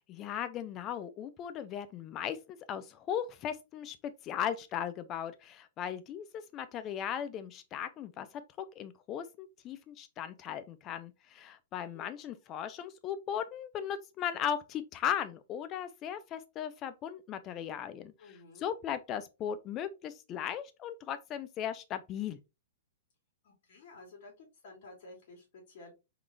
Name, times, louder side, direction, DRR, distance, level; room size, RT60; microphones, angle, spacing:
voice 1, 0.1-4.0 4.2-8.3 8.6-18.1 18.6-22.4, left 9 dB, 25° left, 0.4 m, -37 dB
voice 2, 11.8-12.1 18.2-18.7 23.4-25.9, left 3 dB, 55° left, 1.9 m, -53 dB
3.8 x 2.4 x 3.2 m
hypercardioid pair, 150°, 0 cm